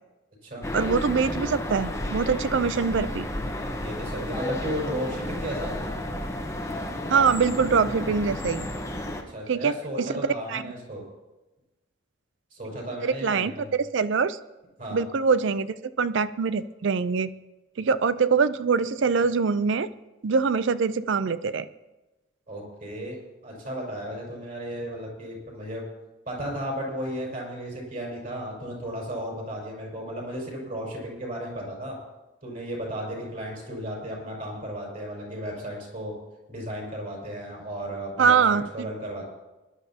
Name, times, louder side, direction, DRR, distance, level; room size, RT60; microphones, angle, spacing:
sound 1, 0.6-9.2, left 1 dB, 15° left, 1.0 m, -32 dB
voice 1, 0.7-3.3 7.1-8.7 9.5-10.2 10.5-10.7 13.0-13.5 13.9-14.4 14.9-17.3 17.8-19.9 20.2-21.7 38.2-38.9, right 5 dB, 60° right, 15 dB, 0.4 m, -24 dB
voice 2, 3.8-5.7 9.3-11.0 12.5-13.7 14.8-15.0 22.5-25.8 26.2-32.0 32.4-36.1 36.5-39.3, equal, 40° right, -2 dB, 5.0 m, -34 dB
21.5 x 11.5 x 2.8 m, 1.1 s
head